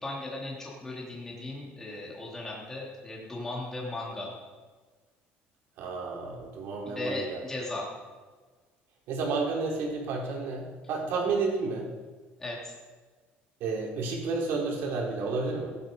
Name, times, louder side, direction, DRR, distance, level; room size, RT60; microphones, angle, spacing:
voice 1, 0.0-4.3 6.8-7.9 12.4-12.7, left 2 dB, 10° left, -4 dB, 3.1 m, -37 dB
voice 2, 5.8-7.4 9.1-11.9 13.6-15.7, right 4 dB, 65° right, -1 dB, 4.6 m, -31 dB
17.0 x 12.0 x 5.4 m, 1.4 s
cardioid pair, 155°, 4 cm